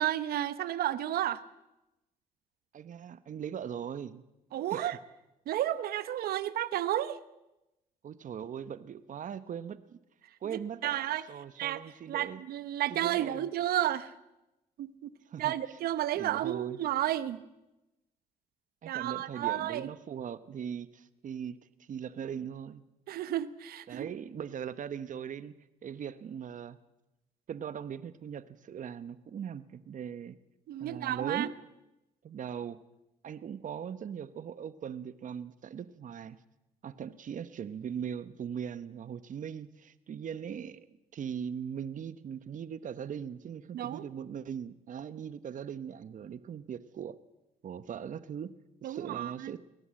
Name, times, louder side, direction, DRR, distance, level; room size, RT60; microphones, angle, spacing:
voice 1, 0.0-1.4 4.5-5.0 5.5-7.2 10.4-11.3 11.6-11.8 12.1-14.1 14.8-15.1 15.4-17.4 18.9-19.9 23.1-24.1 30.7-31.5 43.7-44.1 48.8-49.5, right 12 dB, 85° right, 15 dB, 0.9 m, -32 dB
voice 2, 2.7-4.2 4.7-4.9 8.0-10.0 10.4-11.0 11.3-12.4 12.9-13.5 15.3-15.5 16.2-16.8 18.8-21.6 21.9-22.8 23.9-25.5 25.8-26.8 27.5-30.4 30.8-31.5 32.2-32.8 33.2-36.4 36.8-40.8 41.1-47.2 47.6-48.5 48.8-49.6, right 8 dB, 55° right, 14 dB, 1.1 m, -40 dB
23.0 x 17.5 x 7.7 m, 0.95 s
cardioid pair, 85°, 15 cm